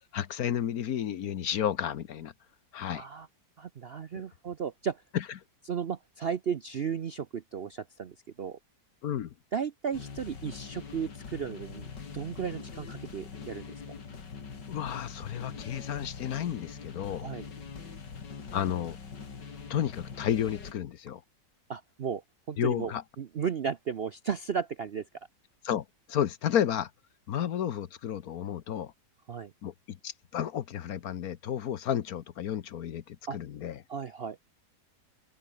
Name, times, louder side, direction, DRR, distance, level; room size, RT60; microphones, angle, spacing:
voice 1, 0.1-2.3 2.7-3.0 5.1-5.2 9.0-9.3 14.7-17.3 18.5-19.0 19.7-21.2 22.6-23.0 25.6-26.9 27.3-28.9 29.6-33.8, left 10 dB, 60° left, 1.3 m, -32 dB
voice 2, 2.9-3.3 3.6-5.0 5.7-8.6 9.5-13.7 17.2-17.4 21.7-22.2 22.5-22.9 23.2-25.1 29.3-29.5 33.3-33.4 33.9-34.4, right 7 dB, 55° right, 0.6 m, -34 dB
sound 1, 9.9-20.7, left 5 dB, 80° left, 3.1 m, -43 dB
open air
omnidirectional pair, 1.9 m